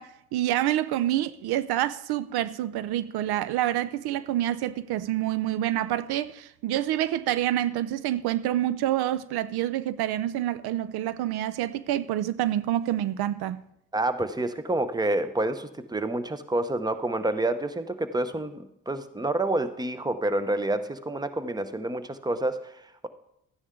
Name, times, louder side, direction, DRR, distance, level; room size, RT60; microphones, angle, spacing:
voice 1, 0.0-13.6, right 13 dB, 75° right, 0.6 m, -27 dB
voice 2, 13.9-23.1, right 2 dB, 10° right, 0.8 m, -28 dB
12.5 x 9.7 x 3.7 m
cardioid pair, 75°, 38 cm